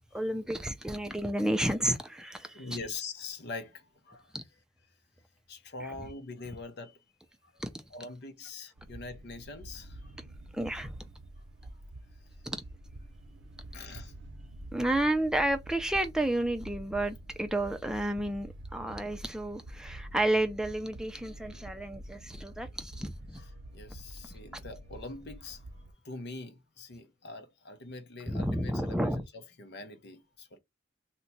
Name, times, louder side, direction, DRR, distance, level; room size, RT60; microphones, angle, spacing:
voice 1, 0.1-2.6 4.3-4.4 6.0-6.1 7.6-7.7 10.5-10.9 12.4-12.6 14.7-23.4 28.3-29.2, right 1 dB, 5° right, 0.4 m, -31 dB
voice 2, 2.5-4.4 5.5-7.0 7.4-7.6 7.9-10.1 13.7-14.1 18.9-19.0 23.4-30.6, left 3 dB, 60° left, 0.6 m, -44 dB
sound 1, 8.8-25.9, right 1 dB, 85° right, 0.7 m, -47 dB
2.8 x 2.2 x 3.9 m
head